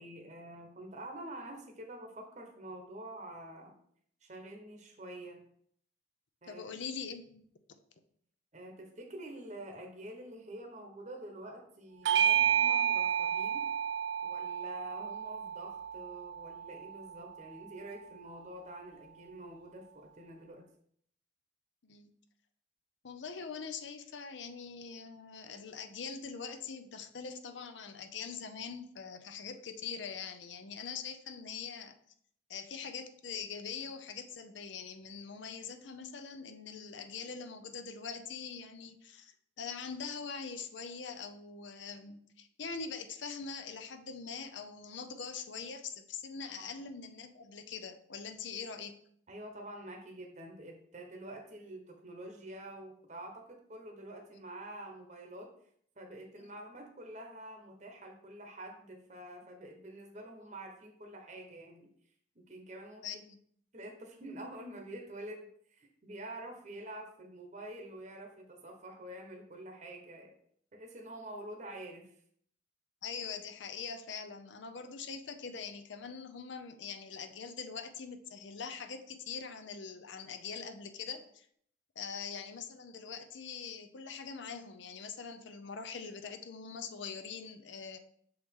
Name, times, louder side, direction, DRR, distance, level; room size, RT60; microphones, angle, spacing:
voice 1, 0.0-3.7 4.2-5.4 6.4-6.8 8.5-13.7 14.2-20.6 46.6-46.7 49.3-55.5 56.0-61.9 62.3-63.0 63.7-70.3 70.7-72.1, right 1 dB, 40° right, 2 dB, 0.9 m, -47 dB
voice 2, 6.5-7.4 21.8-22.1 23.0-32.0 32.5-48.9 54.3-54.4 56.4-56.5 63.0-63.4 73.0-81.5 82.0-88.0, left 6 dB, 80° left, 9 dB, 0.6 m, -43 dB
Bell / Doorbell, 12.0-16.9, right 9 dB, 75° right, 0.3 m, -31 dB
6.4 x 4.7 x 3.6 m, 0.65 s
head